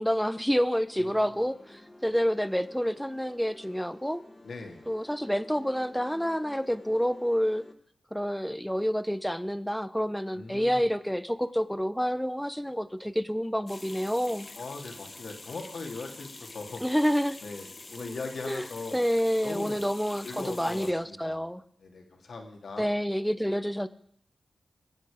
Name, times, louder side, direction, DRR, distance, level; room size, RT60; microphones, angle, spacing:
voice 1, 0.0-4.2 4.9-7.6 8.1-14.5 16.8-17.4 18.0-18.1 18.5-18.6 18.9-21.6 22.8-23.9, equal, 5° left, 0.8 m, -28 dB
voice 2, 0.9-1.4 4.4-4.8 10.3-10.9 14.5-16.8 17.4-19.0 19.4-19.8 20.2-21.4 21.8-22.9, left 3 dB, 75° left, 2.4 m, -40 dB
sound 1, 0.9-7.7, left 1 dB, 25° left, 1.7 m, -51 dB
sound 2, 13.7-20.9, left 3 dB, 45° left, 1.0 m, -46 dB
21.5 x 8.2 x 5.0 m
cardioid pair, 45°, 0 cm